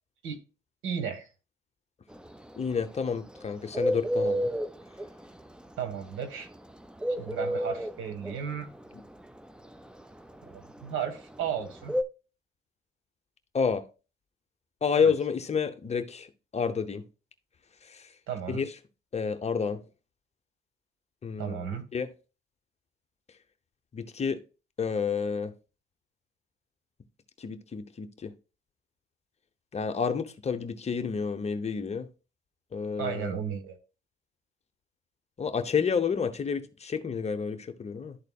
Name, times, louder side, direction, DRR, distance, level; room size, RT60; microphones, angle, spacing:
voice 1, 0.8-1.3 5.8-6.5 7.2-8.7 10.4-12.0 14.9-15.1 18.3-18.6 21.4-21.8 33.0-33.8, right 8 dB, 90° right, 1.4 m, -34 dB
Bird, 2.1-12.0, equal, 5° right, 0.4 m, -31 dB
voice 2, 2.5-4.5 8.9-9.0 13.5-13.8 14.8-17.0 17.8-18.1 18.5-18.7 19.1-19.8 21.2-21.6 21.9-22.1 23.9-24.4 24.8-25.5 27.4-28.3 29.7-32.1 32.7-33.3 35.4-38.2, left 6 dB, 30° left, 0.8 m, -30 dB
12.0 x 4.0 x 2.3 m
cardioid pair, 105°, 20 cm